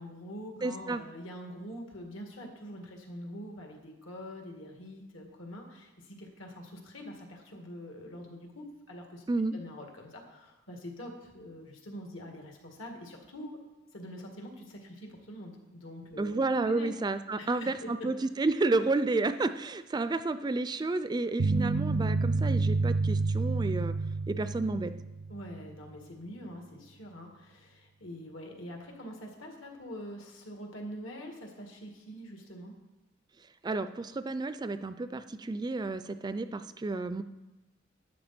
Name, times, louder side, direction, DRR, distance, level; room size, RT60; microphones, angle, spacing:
voice 1, 0.0-9.2 9.5-13.6 13.9-16.9 17.4-17.9 25.3-32.7, equal, 80° left, 2 dB, 2.2 m, -44 dB
voice 2, 0.6-1.0 9.3-9.6 16.2-23.9 24.3-24.9 33.6-37.2, right 3 dB, 20° right, 12 dB, 0.3 m, -31 dB
sound 1, 21.4-25.6, right 3 dB, 90° right, 0.5 m, -29 dB
12.0 x 9.2 x 4.3 m, 1.0 s
head